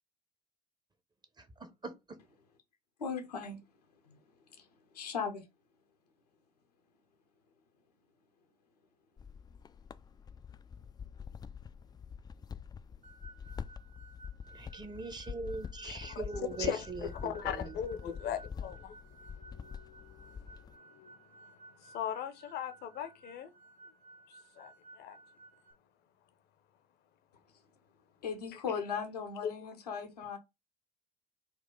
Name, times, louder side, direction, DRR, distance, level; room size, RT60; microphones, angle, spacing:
voice 1, 1.4-2.2 14.5-17.7, right 4 dB, 20° right, 0.8 m, -42 dB
voice 2, 3.0-3.6 4.1-4.2 4.9-5.5 28.2-30.4, left 6 dB, 85° left, 0.9 m, -37 dB
sound 1, 9.2-20.8, left 6 dB, 20° left, 0.3 m, -46 dB
sound 2, 13.0-25.7, right 3 dB, 50° right, 0.9 m, -57 dB
voice 3, 15.8-16.9 17.2-21.2 21.5-23.5 24.6-25.2, left 9 dB, 55° left, 0.7 m, -40 dB
4.2 x 2.4 x 3.7 m
hypercardioid pair, 55°, 20 cm